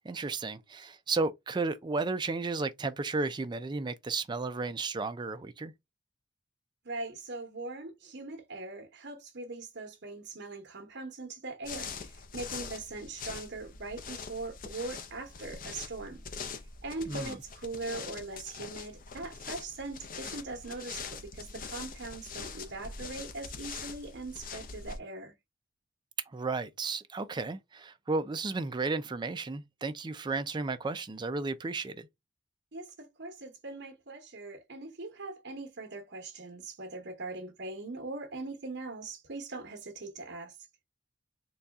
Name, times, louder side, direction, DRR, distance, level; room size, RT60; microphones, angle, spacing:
voice 1, 0.0-5.7 17.1-17.4 26.3-32.1, right 3 dB, 25° right, 0.4 m, -33 dB
voice 2, 6.8-16.2 16.5-25.3 32.7-40.5, right 2 dB, 60° right, 1.0 m, -41 dB
sound 1, 11.6-25.0, left 5 dB, 45° left, 0.6 m, -43 dB
4.0 x 2.3 x 3.4 m
head